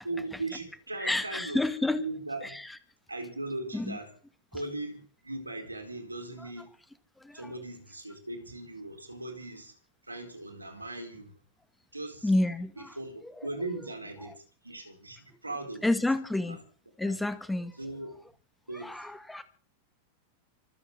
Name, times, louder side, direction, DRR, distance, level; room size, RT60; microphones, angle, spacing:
voice 1, 0.0-1.6 2.0-2.6 3.1-4.1 4.5-6.7 7.3-9.7 10.0-11.3 11.9-12.3 13.0-15.8 17.0-17.1 17.8-18.2 18.7-19.1, right 2 dB, 85° right, 4.3 m, -38 dB
voice 2, 1.0-2.0 2.4-2.8 3.7-4.0 6.4-6.5 7.2-7.5 12.2-13.0 13.2-13.5 14.2-14.3 15.8-16.6 17.0-17.8 18.7-19.4, left 2 dB, 5° left, 1.9 m, -30 dB
25.0 x 8.4 x 6.8 m
figure-of-eight pair, 90°, 0 cm